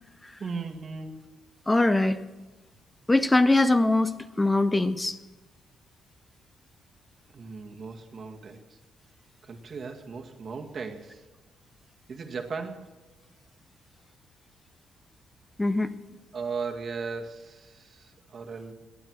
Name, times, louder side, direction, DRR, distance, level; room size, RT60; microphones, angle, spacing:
voice 1, 0.4-1.2 7.3-8.8 9.4-11.3 12.1-12.9 16.3-18.7, right 4 dB, 45° right, 3 dB, 2.0 m, -37 dB
voice 2, 1.7-2.2 3.1-5.2 15.6-16.0, left 2 dB, 15° left, 12 dB, 0.6 m, -22 dB
18.5 x 10.0 x 6.4 m, 1.3 s
cardioid pair, 90°, 0 cm